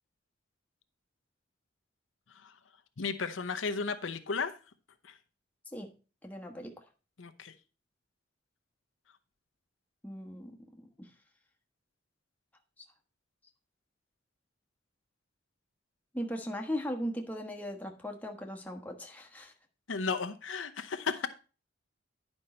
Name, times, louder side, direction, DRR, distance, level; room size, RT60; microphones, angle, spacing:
voice 1, 3.0-4.5 5.0-5.2 7.2-7.5 19.9-21.3, left 5 dB, 85° left, 0.8 m, -34 dB
voice 2, 6.2-6.8 10.0-11.1 12.8-12.9 16.1-19.5, equal, 10° left, 1.2 m, -38 dB
10.5 x 5.4 x 4.3 m
head